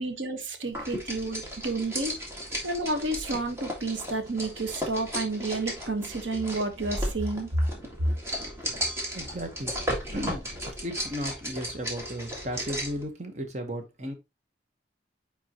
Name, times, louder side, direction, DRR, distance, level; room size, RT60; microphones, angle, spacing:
voice 1, 0.0-2.2 2.6-7.5, right 2 dB, 90° right, 1.2 m, -31 dB
sound 1, 0.7-13.0, equal, 15° right, 1.8 m, -35 dB
voice 2, 9.1-9.8 10.1-10.5 10.8-14.1, equal, 40° right, 1.1 m, -35 dB
9.2 x 3.6 x 2.9 m
head